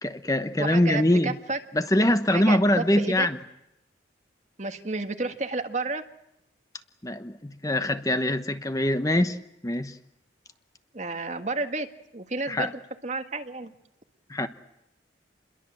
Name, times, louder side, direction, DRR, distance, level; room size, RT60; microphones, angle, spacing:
voice 1, 0.0-1.4 1.7-3.4 7.0-10.0 12.5-12.7 14.3-14.5, left 1 dB, 20° left, 1.0 m, -23 dB
voice 2, 0.6-1.6 2.3-3.3 4.6-6.0 10.9-11.9 12.1-12.7 13.0-13.7, right 3 dB, 40° right, 1.7 m, -31 dB
28.5 x 22.0 x 7.6 m
head